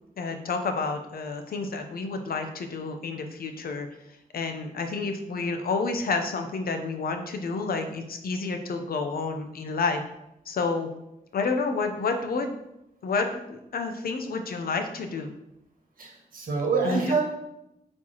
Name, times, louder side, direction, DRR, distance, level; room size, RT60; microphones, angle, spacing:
voice 1, 0.2-3.9 4.3-10.0 10.5-10.9 11.3-12.5 13.0-15.3 16.8-17.2, left 4 dB, 80° left, 6 dB, 0.7 m, -29 dB
voice 2, 16.0-17.2, right 4 dB, 70° right, 0 dB, 1.6 m, -26 dB
8.6 x 4.5 x 2.9 m, 0.87 s
wide cardioid pair, 170°, 15 cm